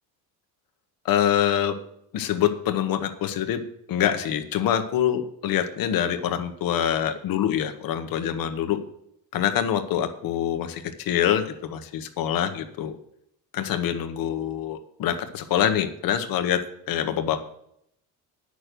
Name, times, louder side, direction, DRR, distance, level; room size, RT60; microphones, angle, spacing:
voice 1, 1.0-1.8 2.1-8.8 9.3-13.0 13.5-17.5, left 10 dB, 60° left, 8 dB, 1.2 m, -25 dB
9.7 x 6.4 x 6.7 m, 0.73 s
cardioid pair, 135°, 39 cm